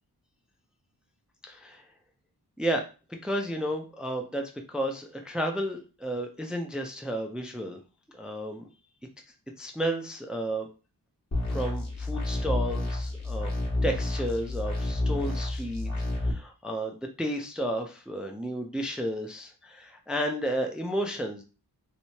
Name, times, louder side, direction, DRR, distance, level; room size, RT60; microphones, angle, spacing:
voice 1, 1.4-1.9 2.6-2.8 3.2-7.8 8.1-8.7 9.6-10.7 11.5-13.5 13.8-21.4, right 1 dB, ahead, 3 dB, 0.4 m, -32 dB
sound 1, 11.3-16.3, left 2 dB, 40° left, 1.2 m, -30 dB
3.2 x 3.1 x 2.8 m, 0.33 s
wide cardioid pair, 95°, 40 cm